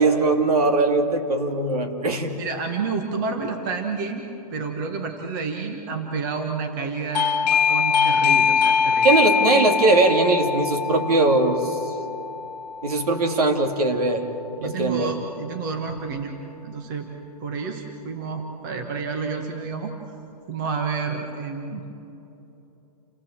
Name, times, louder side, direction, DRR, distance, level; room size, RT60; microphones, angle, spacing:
voice 1, 0.0-2.3 9.0-11.9 12.8-14.3 14.6-15.1, right 3 dB, 65° right, 4 dB, 2.7 m, -20 dB
voice 2, 2.4-9.1 14.6-16.3 16.6-17.1 17.4-20.2 20.5-21.8, right 4 dB, 30° right, 4 dB, 1.4 m, -30 dB
Doorbell, 7.1-13.6, left 6 dB, 85° left, 0.9 m, -23 dB
29.0 x 17.5 x 7.5 m, 3.0 s
hypercardioid pair, 175°, 21 cm